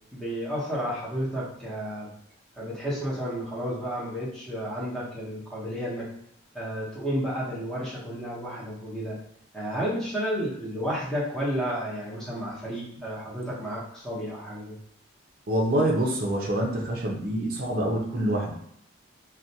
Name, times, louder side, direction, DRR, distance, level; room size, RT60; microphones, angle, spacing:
voice 1, 0.1-2.1 2.6-6.0 6.5-9.2 9.5-14.8, equal, 5° left, -8 dB, 0.8 m, -31 dB
voice 2, 15.5-18.5, right 1 dB, 50° right, -1 dB, 0.5 m, -26 dB
2.5 x 2.2 x 2.7 m, 0.69 s
head